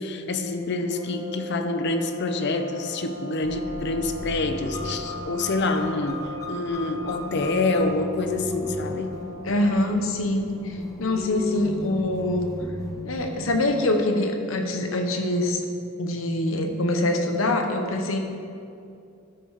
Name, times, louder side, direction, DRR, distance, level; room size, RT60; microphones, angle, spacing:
voice 1, 0.0-9.2, left 2 dB, 60° left, 7 dB, 0.6 m, -27 dB
sound 1, 0.7-9.7, equal, 30° right, 2.4 m, -40 dB
sound 2, 3.4-13.6, left 2 dB, 15° left, 0.7 m, -35 dB
voice 2, 9.4-12.5 13.0-15.6 16.0-18.2, left 1 dB, 80° left, 5 dB, 1.0 m, -24 dB
12.5 x 5.7 x 4.8 m, 2.6 s
head